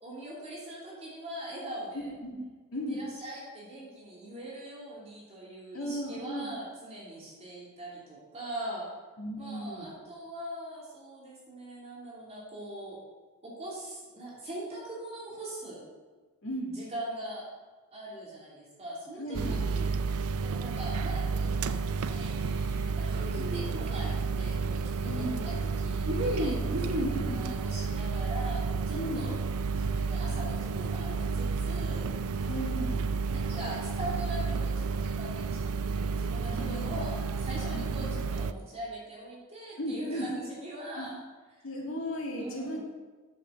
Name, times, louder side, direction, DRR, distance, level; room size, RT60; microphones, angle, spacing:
voice 1, 0.0-2.1 2.9-8.9 9.4-13.0 13.4-15.9 16.7-17.5 17.9-19.9 20.4-29.4 29.7-32.1 33.3-41.1 41.5-41.6 42.4-42.8, right 1 dB, 30° right, -7 dB, 3.0 m, -42 dB
voice 2, 2.7-3.1 5.7-6.5 9.2-9.9 16.4-16.8 19.2-19.7 25.0-25.5 27.0-27.4 28.9-29.2 32.4-33.0 36.4-37.3 37.6-38.1 39.8-40.3 40.9-41.1 41.6-42.8, equal, 65° left, -3 dB, 2.5 m, -36 dB
sound 1, 19.3-38.5, right 4 dB, 80° right, 0.4 m, -31 dB
sound 2, 21.9-24.1 26.1-27.2, equal, 50° right, 1.3 m, -34 dB
9.0 x 6.7 x 6.3 m, 1.3 s
head